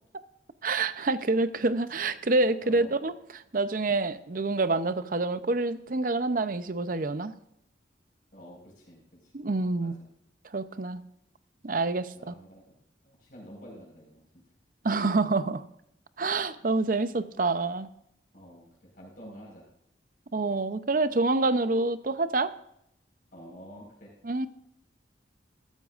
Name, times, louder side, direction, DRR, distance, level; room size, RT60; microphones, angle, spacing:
voice 1, 0.6-7.3 9.3-9.9 10.5-11.0 11.6-12.3 14.8-15.6 16.2-17.9 20.3-22.5 24.2-24.5, right 3 dB, 50° right, 13 dB, 0.6 m, -27 dB
voice 2, 2.6-3.0 8.3-9.4 9.8-9.9 12.1-14.2 18.3-19.7 23.3-24.1, equal, 50° left, -2 dB, 4.7 m, -49 dB
14.5 x 13.0 x 2.5 m, 0.77 s
head